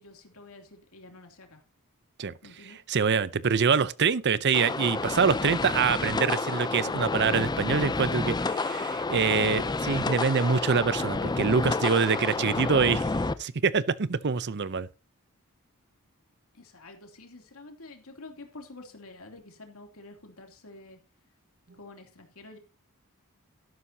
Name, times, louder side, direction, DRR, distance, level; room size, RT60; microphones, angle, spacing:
voice 1, 0.0-1.6 2.4-2.8 12.3-12.6 16.5-21.0 21.7-22.6, left 2 dB, 70° left, 2.9 m, -48 dB
voice 2, 2.9-13.0 13.4-14.9, right 5 dB, 50° right, 0.6 m, -25 dB
sound 1, 4.5-13.3, left 3 dB, 20° left, 0.5 m, -30 dB
12.5 x 11.5 x 2.8 m
head